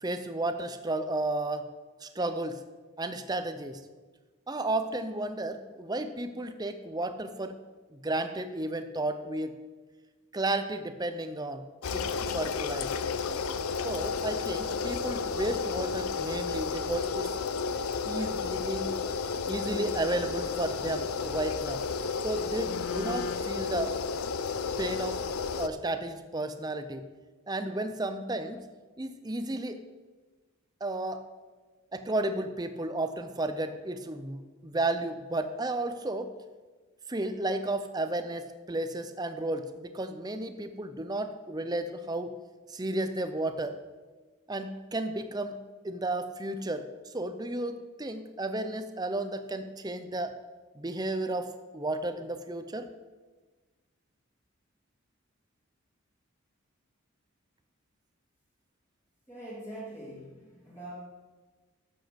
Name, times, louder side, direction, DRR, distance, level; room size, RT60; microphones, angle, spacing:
voice 1, 0.0-1.7 2.0-2.6 3.0-3.8 4.5-7.6 7.9-9.6 10.3-11.6 11.9-12.1 12.3-12.9 13.8-17.3 18.0-18.9 19.5-21.9 22.2-24.0 24.8-25.2 25.6-27.1 27.5-28.6 29.0-29.8 30.8-31.2 31.9-36.3 37.1-42.3 42.7-43.8 44.5-45.6 45.8-50.3 50.8-52.9, right 2 dB, 20° right, 10 dB, 0.6 m, -33 dB
sound 1, 11.8-25.7, left 5 dB, 85° left, 0.6 m, -32 dB
voice 2, 59.3-60.9, right 1 dB, 10° left, -8 dB, 2.7 m, -43 dB
12.0 x 7.8 x 5.2 m, 1.3 s
head